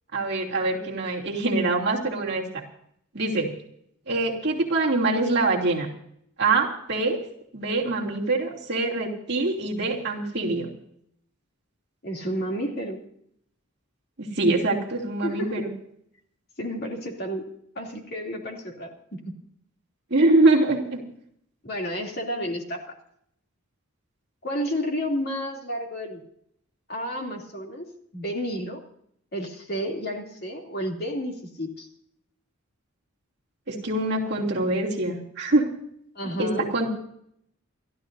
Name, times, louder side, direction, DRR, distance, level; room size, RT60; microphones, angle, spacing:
voice 1, 0.1-2.6 3.1-3.5 4.1-5.9 6.4-7.2 7.5-10.7 14.2-15.7 20.1-21.0 33.7-35.7 36.4-36.9, right 2 dB, 50° right, -3 dB, 3.0 m, -24 dB
voice 2, 12.0-13.0 15.2-15.6 16.6-17.4 17.7-19.2 21.6-22.9 24.4-26.2 26.9-27.8 28.1-28.8 29.3-31.9 36.1-36.7, equal, 45° left, 0 dB, 3.0 m, -31 dB
29.0 x 12.5 x 2.7 m, 0.69 s
head